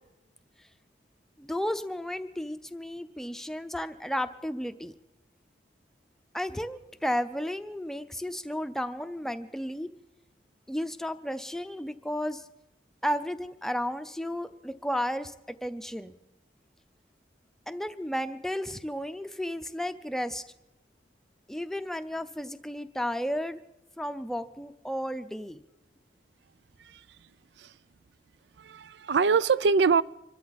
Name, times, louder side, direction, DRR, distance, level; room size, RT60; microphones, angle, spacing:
voice 1, 1.4-4.9 6.3-9.9 10.7-12.5 13.0-15.3 15.6-16.1 17.7-20.4 21.5-23.6 24.0-25.6, equal, ahead, 0.6 m, -33 dB
voice 2, 28.6-30.0, right 5 dB, 75° right, 0.5 m, -24 dB
26.0 x 13.5 x 4.2 m
head